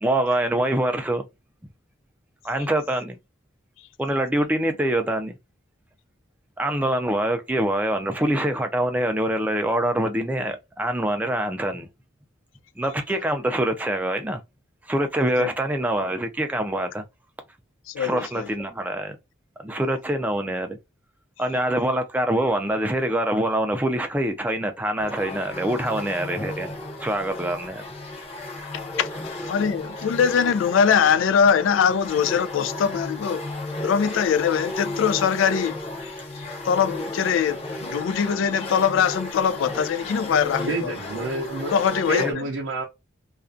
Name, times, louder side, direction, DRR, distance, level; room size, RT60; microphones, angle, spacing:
voice 1, 0.0-1.2 2.4-3.2 4.0-5.4 6.6-11.9 12.8-14.4 14.9-17.0 18.0-19.2 19.6-20.8 21.4-27.8 42.2-42.3, right 1 dB, 10° right, 0.4 m, -25 dB
voice 2, 17.9-18.5 28.9-33.5 33.8-36.1 36.6-40.9 41.7-42.5, left 7 dB, 75° left, 0.3 m, -22 dB
sound 1, 25.0-42.3, left 1 dB, 30° left, 0.6 m, -34 dB
voice 3, 40.7-41.7 42.1-42.8, right 2 dB, 65° right, 0.5 m, -29 dB
2.4 x 2.1 x 2.5 m
head